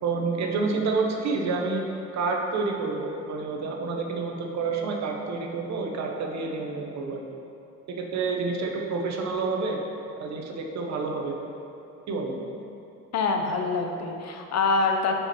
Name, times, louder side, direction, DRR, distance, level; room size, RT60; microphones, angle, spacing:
voice 1, 0.0-1.8 2.1-7.2 7.9-9.8 10.2-11.4 12.1-12.3, right 4 dB, 65° right, 1 dB, 0.8 m, -28 dB
voice 2, 13.1-15.2, left 4 dB, 60° left, 3 dB, 0.7 m, -25 dB
5.0 x 4.9 x 4.4 m, 2.8 s
cardioid pair, 115°, 30 cm